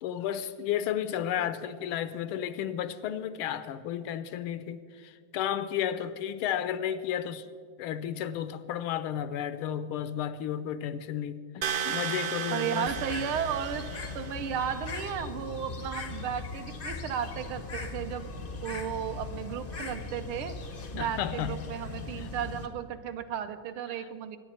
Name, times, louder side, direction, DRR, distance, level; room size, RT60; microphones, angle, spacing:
voice 1, 0.0-7.5 7.8-12.9 21.0-21.6 22.2-22.3 23.9-24.1, left 10 dB, 80° left, 1.5 m, -33 dB
sound 1, 11.6-14.5, right 8 dB, 55° right, 1.0 m, -34 dB
voice 2, 12.5-13.9 14.1-20.6 20.9-24.4, right 8 dB, 80° right, 1.6 m, -34 dB
Bird, 12.9-22.7, left 4 dB, 55° left, 0.6 m, -39 dB
22.5 x 9.8 x 4.3 m
omnidirectional pair, 2.4 m